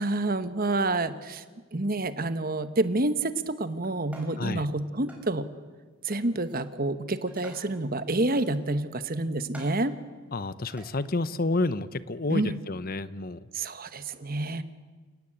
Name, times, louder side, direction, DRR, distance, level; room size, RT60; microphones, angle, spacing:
voice 1, 0.0-1.4 1.7-5.5 6.0-9.9 12.3-12.6 13.5-14.6, right 2 dB, 45° right, 12 dB, 1.2 m, -28 dB
sound 1, 3.8-4.5 5.1-5.3 6.1-6.7 7.1-7.8 8.3-9.0 9.5-9.9 10.7-10.9, right 1 dB, 5° right, 5.1 m, -49 dB
voice 2, 10.3-13.5, left 2 dB, 45° left, 15 dB, 0.8 m, -30 dB
29.0 x 17.5 x 8.8 m, 1.4 s
head